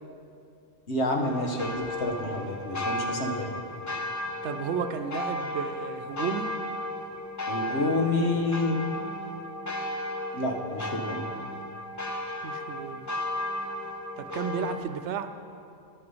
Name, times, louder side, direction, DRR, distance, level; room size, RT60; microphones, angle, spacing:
voice 1, 0.9-3.5 7.5-8.8 10.3-11.2, left 2 dB, 70° left, 2 dB, 1.4 m, -28 dB
sound 1, 1.2-14.8, left 1 dB, 20° left, 0.6 m, -34 dB
voice 2, 4.4-6.5 12.4-13.1 14.2-15.3, right 7 dB, 85° right, 10 dB, 0.9 m, -33 dB
10.5 x 9.7 x 5.5 m, 2.6 s
omnidirectional pair, 1.2 m